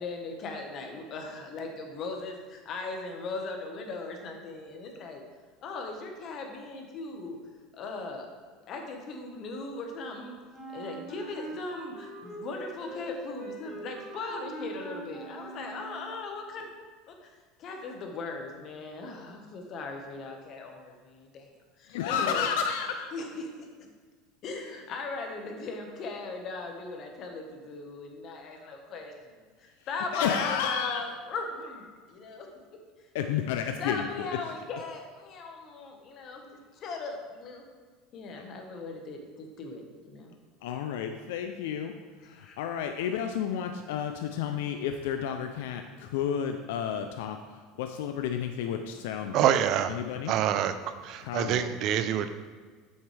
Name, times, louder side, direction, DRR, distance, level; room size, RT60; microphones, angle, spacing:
voice 1, 0.0-5.2 5.6-7.4 7.7-8.3 8.7-10.4 10.7-16.7 17.1-21.5 21.8-22.5 23.1-23.7 24.4-32.8 33.3-33.4 33.8-36.5 36.7-37.6 38.1-40.3 42.3-42.6, left 3 dB, 40° left, 3 dB, 1.3 m, -38 dB
Wind instrument woodwind instrument, 10.5-16.2, right 3 dB, 10° right, 1.7 m, -43 dB
voice 2, 21.9-23.1 30.1-31.0 33.1-34.3 38.4-38.5 40.6-41.9 42.2-49.5 49.9-50.3 51.2-51.7, left 8 dB, 85° left, 6 dB, 0.5 m, -31 dB
voice 3, 49.3-50.0 50.3-50.7 51.0-52.3, right 10 dB, 50° right, 11 dB, 0.5 m, -26 dB
7.9 x 7.2 x 3.4 m, 1.5 s
supercardioid pair, 140°, 0 cm